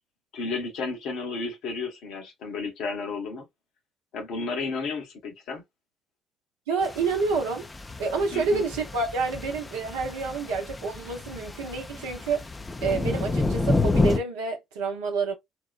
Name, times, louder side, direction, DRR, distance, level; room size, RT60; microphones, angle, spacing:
voice 1, 0.3-3.5 4.1-5.6 8.3-8.7, left 4 dB, 70° left, 1.0 m, -32 dB
voice 2, 6.7-7.6 8.0-12.5 12.8-15.3, right 4 dB, 80° right, 0.6 m, -28 dB
sound 1, 6.8-14.2, left 3 dB, 25° left, 0.4 m, -29 dB
2.8 x 2.1 x 2.3 m
hypercardioid pair, 50°, 0 cm